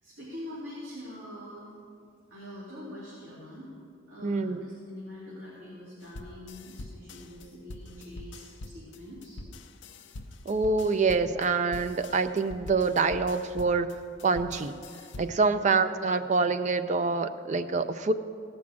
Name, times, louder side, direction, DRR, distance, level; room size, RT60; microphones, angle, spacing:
voice 1, 0.0-1.7 2.3-3.7 4.1-9.4 15.4-15.8, left 1 dB, 65° right, -9 dB, 3.1 m, -44 dB
voice 2, 4.2-4.6 10.5-13.9 14.2-14.7 15.2-18.1, right 4 dB, 35° right, 10 dB, 0.4 m, -26 dB
sound 1, 6.0-15.5, left 2 dB, 60° left, 0.6 m, -45 dB
16.5 x 6.1 x 7.2 m, 2.4 s
head